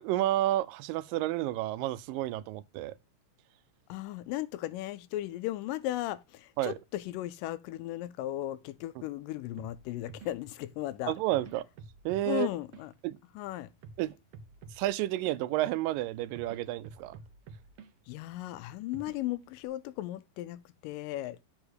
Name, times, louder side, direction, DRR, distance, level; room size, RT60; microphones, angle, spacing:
voice 1, 0.0-2.9 6.6-6.7 11.1-11.7 12.1-12.5 13.0-13.2 14.0-14.1 14.7-17.1, right 14 dB, 90° right, 2.3 m, -30 dB
voice 2, 3.9-11.1 12.3-12.9 13.4-13.7 18.1-21.4, left 15 dB, 85° left, 2.2 m, -36 dB
sound 1, 9.6-19.7, right 5 dB, 70° right, 1.6 m, -53 dB
7.9 x 3.5 x 6.3 m
omnidirectional pair, 3.9 m